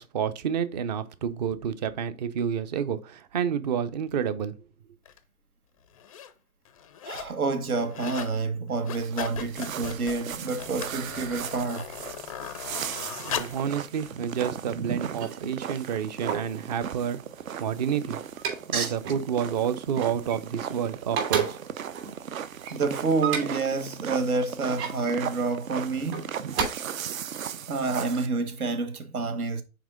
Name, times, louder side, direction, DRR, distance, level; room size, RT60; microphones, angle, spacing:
voice 1, 0.0-4.5 13.2-17.2 17.6-18.2 18.7-21.6, right 8 dB, 30° right, 0.5 m, -29 dB
sound 1, 5.1-5.2 5.9-6.3 6.7-7.4 7.7-8.4 8.7-13.7 14.3-14.4, left 9 dB, 30° left, 0.4 m, -38 dB
voice 2, 7.0-12.0 18.7-18.9 22.7-26.3 27.7-29.6, right 3 dB, 85° right, 1.2 m, -28 dB
sound 2, 8.9-28.3, right 8 dB, 70° right, 0.7 m, -37 dB
sound 3, 15.2-16.6 17.2-18.7 19.0-19.3 19.6-20.7 21.0-23.8 24.4-25.2 26.0-26.6, right 7 dB, 50° right, 3.4 m, -33 dB
5.9 x 4.4 x 3.6 m
hypercardioid pair, 130°, 42 cm